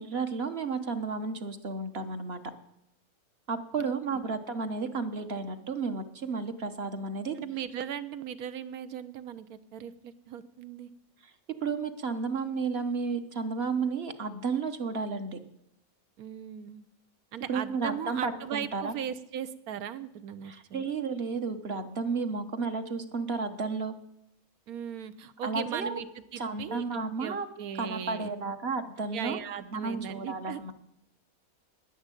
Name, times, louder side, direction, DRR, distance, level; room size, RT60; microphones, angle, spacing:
voice 1, 0.0-2.4 3.5-7.4 11.6-15.4 17.5-18.9 20.4-23.9 25.4-26.0 26.4-27.5 27.8-29.4 29.7-30.7, right 4 dB, 45° right, 8 dB, 1.2 m, -32 dB
voice 2, 3.8-4.3 7.4-10.9 16.2-16.8 17.3-20.9 22.3-22.5 24.7-28.3 29.1-30.7, right 9 dB, 80° right, 14 dB, 1.3 m, -38 dB
11.0 x 10.0 x 9.0 m, 0.80 s
omnidirectional pair, 1.5 m